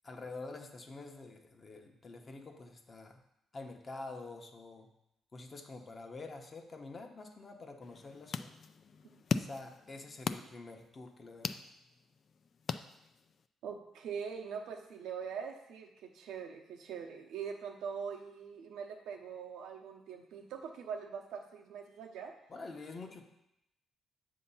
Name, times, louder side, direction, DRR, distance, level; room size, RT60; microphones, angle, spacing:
voice 1, 0.0-3.2 3.5-4.9 5.3-8.5 9.3-11.6 22.5-23.2, left 3 dB, 35° left, 3 dB, 0.9 m, -47 dB
sound 1, 7.8-13.5, left 6 dB, 50° left, 0.3 m, -40 dB
voice 2, 13.6-22.3, right 6 dB, 80° right, 3 dB, 0.8 m, -43 dB
7.6 x 2.8 x 5.6 m, 0.83 s
cardioid pair, 90°, 0 cm